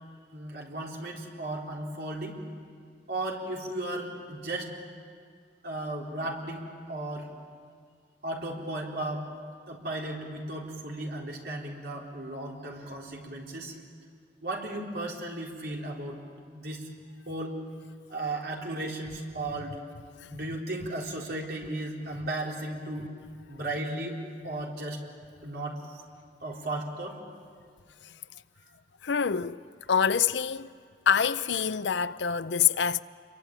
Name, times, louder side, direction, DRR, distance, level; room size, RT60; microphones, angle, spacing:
voice 1, 0.3-2.4 3.1-4.7 5.6-7.3 8.2-9.3 9.7-13.7 14.4-16.2 16.5-16.8 17.3-17.5 18.1-19.8 20.3-23.1 23.5-24.2 24.4-25.0 25.4-26.0 26.4-27.2, right 2 dB, 65° right, 4.1 m, -35 dB
voice 2, 29.0-29.6 29.9-30.7 31.1-33.0, left 7 dB, 90° left, 0.6 m, -26 dB
28.0 x 23.5 x 9.0 m
head